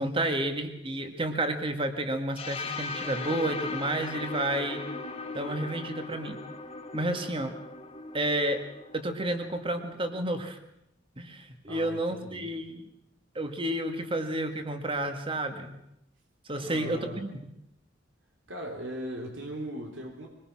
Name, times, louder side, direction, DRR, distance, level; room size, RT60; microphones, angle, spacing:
voice 1, 0.0-4.8 5.3-6.4 6.9-7.5 8.1-8.6 8.9-10.6 11.2-12.9 13.4-15.8 16.5-17.6, right 1 dB, 30° right, 7 dB, 2.0 m, -31 dB
sound 1, 2.3-10.2, left 3 dB, 35° left, 2.3 m, -38 dB
voice 2, 11.7-12.5 16.6-17.2 18.5-20.3, equal, 85° right, 1 dB, 3.6 m, -39 dB
24.0 x 21.0 x 6.1 m, 0.82 s
head